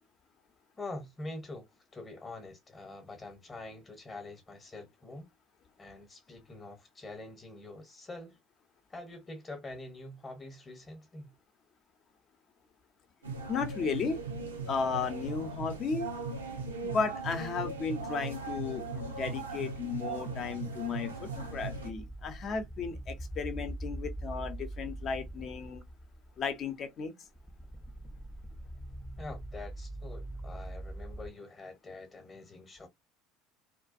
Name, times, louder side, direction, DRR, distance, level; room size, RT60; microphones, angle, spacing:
voice 1, 0.8-1.7 1.9-5.3 5.8-8.4 8.9-11.3 29.2-32.9, left 2 dB, 20° left, 1.0 m, -45 dB
sound 1, 13.2-21.9, right 4 dB, 90° right, 0.5 m, -38 dB
voice 2, 13.5-14.2 14.7-16.1 16.8-25.8 26.4-27.1, left 5 dB, 45° left, 0.7 m, -34 dB
sound 2, 21.4-26.9 27.3-31.3, right 1 dB, ahead, 0.6 m, -43 dB
2.3 x 2.1 x 2.5 m
hypercardioid pair, 65°, 0 cm